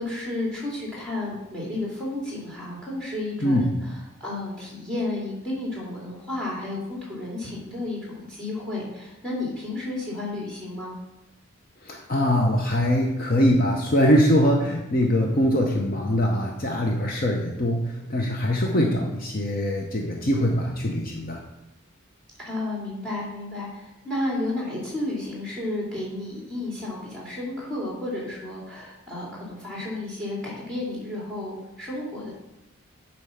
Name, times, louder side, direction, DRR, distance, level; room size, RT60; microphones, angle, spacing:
voice 1, 0.0-11.0 18.7-18.9 22.4-32.3, left 2 dB, 5° left, -4 dB, 2.6 m, -32 dB
voice 2, 11.8-21.4, equal, 40° left, 0 dB, 0.7 m, -22 dB
8.2 x 4.4 x 5.8 m, 0.93 s
head